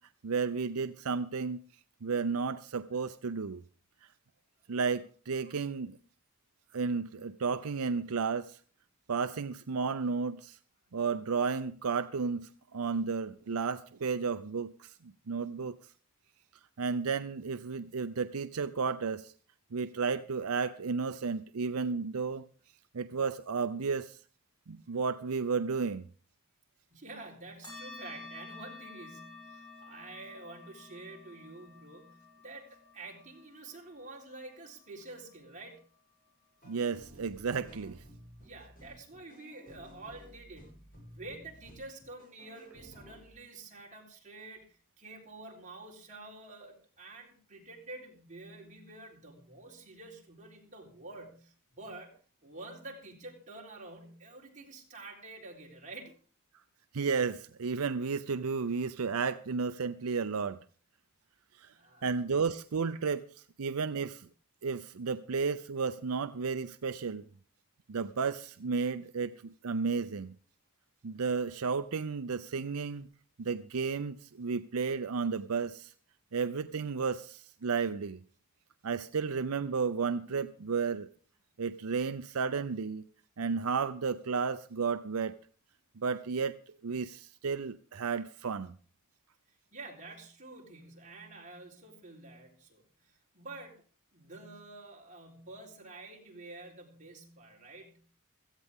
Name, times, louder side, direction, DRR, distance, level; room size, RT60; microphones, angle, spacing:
voice 1, 0.2-1.6 2.0-3.6 4.7-6.0 6.7-8.6 9.1-10.6 10.9-15.8 16.8-19.3 19.7-22.4 22.9-24.2 24.7-26.0 36.6-38.0 56.9-60.6 61.6-61.7 62.0-64.3 64.6-67.2 67.9-70.3 71.0-73.1 73.4-75.9 76.3-78.2 78.8-81.1 81.6-83.0 83.4-85.3 86.0-86.6 86.8-88.7, right 5 dB, 80° right, 0.6 m, -33 dB
voice 2, 26.9-35.8 38.4-40.8 41.1-52.1 52.4-56.1 61.7-62.1 89.7-93.8 94.1-98.0, right 2 dB, 35° right, 4.0 m, -48 dB
sound 1, 27.6-36.6, left 3 dB, 20° left, 7.8 m, -51 dB
sound 2, 36.6-43.3, equal, 40° left, 7.2 m, -54 dB
16.5 x 15.0 x 3.7 m
head